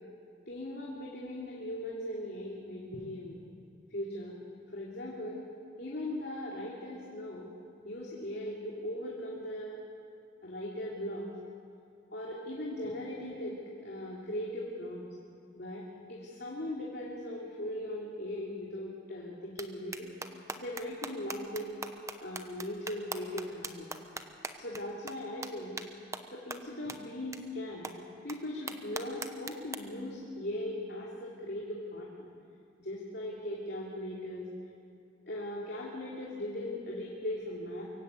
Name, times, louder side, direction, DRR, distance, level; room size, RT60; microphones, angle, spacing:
voice 1, 0.5-3.4 3.9-4.4 4.7-5.5 5.8-7.5 7.8-9.8 10.4-11.3 12.1-15.1 15.5-21.8 22.2-23.9 24.6-25.8 26.3-27.9 28.2-32.3 32.8-34.5 35.3-37.9, left 1 dB, 60° left, -4 dB, 2.9 m, -39 dB
sound 1, 19.6-19.7 19.9-24.8 25.1-25.2 25.4-25.5 25.8-25.9 26.1-26.2 26.5-26.6 26.9-27.0 27.3-27.4 27.8-27.9 28.3-28.4 28.7-29.8, right 3 dB, 15° right, 1.0 m, -39 dB
23.5 x 16.0 x 8.3 m, 2.5 s
head